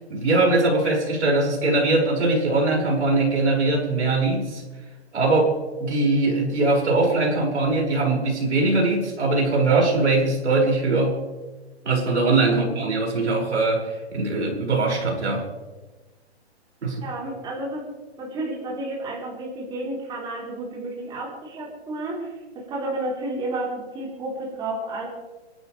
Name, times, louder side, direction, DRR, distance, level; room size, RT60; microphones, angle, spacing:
voice 1, 0.0-4.6 5.1-5.5 5.8-11.2 11.8-15.5 16.8-17.0, right 3 dB, 90° right, -1 dB, 6.2 m, -21 dB
voice 2, 12.3-12.7 17.0-17.8 18.2-25.1, right 2 dB, 15° right, -3 dB, 3.8 m, -31 dB
29.0 x 12.0 x 3.4 m, 1.3 s
hypercardioid pair, 160°, 33 cm